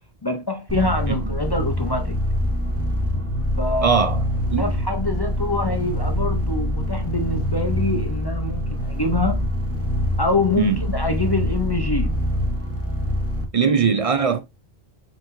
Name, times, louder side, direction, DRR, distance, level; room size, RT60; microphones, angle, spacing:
voice 1, 0.2-2.2 3.6-4.1 4.6-9.4 10.2-12.2, left 2 dB, 25° left, 0.6 m, -25 dB
sound 1, 0.7-13.4, equal, 15° right, 1.0 m, -25 dB
voice 2, 3.8-4.2 4.5-4.7 10.6-10.8 13.5-14.4, right 6 dB, 50° right, 0.4 m, -20 dB
4.4 x 4.4 x 2.6 m
omnidirectional pair, 1.1 m